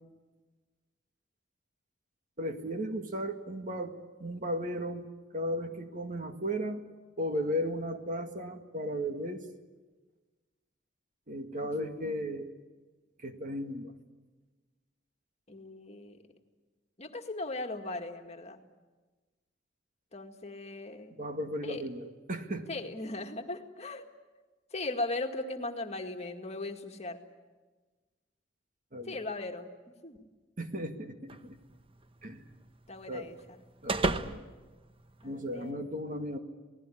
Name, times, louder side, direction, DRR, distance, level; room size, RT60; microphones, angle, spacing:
voice 1, 2.4-5.1 5.3-6.8 7.2-9.5 11.3-12.5 13.2-13.9 21.2-22.7 28.9-29.2 30.6-31.6 32.2-32.5 33.1-33.3 33.8-34.5 35.2-36.4, equal, 45° right, 6 dB, 2.0 m, -35 dB
voice 2, 11.6-12.1 15.5-16.2 17.0-18.6 20.1-21.1 21.6-21.8 22.7-24.0 24.7-27.2 29.0-29.7 30.0-30.3 32.9-33.6 35.2-35.9, left 2 dB, 35° left, 4 dB, 2.0 m, -38 dB
sound 1, 31.3-35.7, right 2 dB, 30° right, 0.9 m, -37 dB
27.5 x 19.0 x 10.0 m, 1.3 s
head